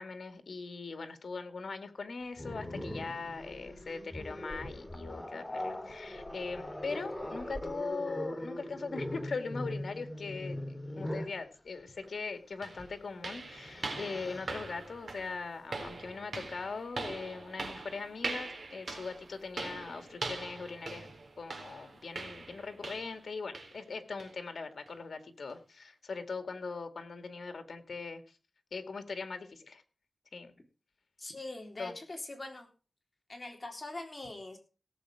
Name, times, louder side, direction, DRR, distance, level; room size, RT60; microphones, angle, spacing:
voice 1, 0.0-21.1 21.4-28.2 28.7-29.8 30.3-30.5 31.8-31.9, left 4 dB, 80° left, 8 dB, 2.1 m, -40 dB
Growling, 2.4-11.4 12.7-12.9 13.3-14.5, left 1 dB, 15° left, 2.9 m, -40 dB
sound 1, 12.0-12.1 12.6-23.3 23.5-23.8 24.2-24.4 24.9-25.0 25.5-25.6, right 3 dB, 70° right, 4.2 m, -42 dB
voice 2, 31.2-32.7 33.3-34.6, left 2 dB, 35° left, 3 dB, 3.6 m, -42 dB
17.5 x 8.3 x 4.9 m, 0.35 s
wide cardioid pair, 85°, 0 cm